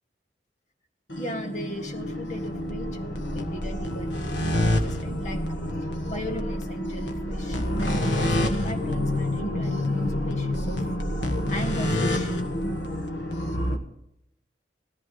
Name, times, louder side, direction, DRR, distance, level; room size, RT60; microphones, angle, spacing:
sound 1, 1.1-13.8, left 1 dB, 75° left, 1.6 m, -27 dB
voice 1, 1.2-5.4 6.1-10.9 11.5-12.3, equal, 45° left, 4 dB, 1.8 m, -37 dB
18.5 x 14.0 x 3.9 m, 0.76 s
head